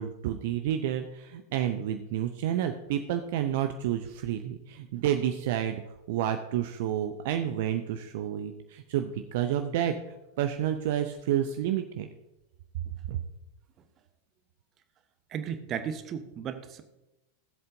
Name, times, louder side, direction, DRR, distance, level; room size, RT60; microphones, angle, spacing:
voice 1, 0.0-5.8 6.1-10.0 10.4-12.1 13.1-13.2, right 10 dB, 50° right, 7 dB, 0.6 m, -30 dB
voice 2, 15.3-16.8, right 8 dB, 30° right, 10 dB, 1.0 m, -35 dB
17.0 x 7.8 x 2.7 m, 0.95 s
figure-of-eight pair, 90°, 0 cm